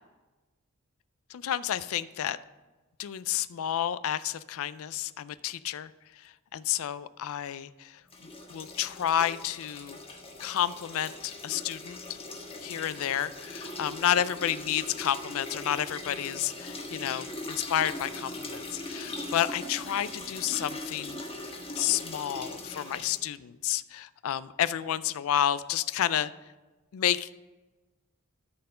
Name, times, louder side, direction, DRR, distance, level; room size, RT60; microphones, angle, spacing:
voice 1, 1.3-2.4 3.0-5.9 6.2-8.0 8.5-10.0 10.4-12.2 12.6-21.2 21.8-26.3 26.9-27.4, left 10 dB, 65° left, 16 dB, 0.4 m, -30 dB
sound 1, 8.1-23.2, left 2 dB, 25° left, 1.3 m, -40 dB
13.0 x 4.4 x 5.5 m, 1.2 s
head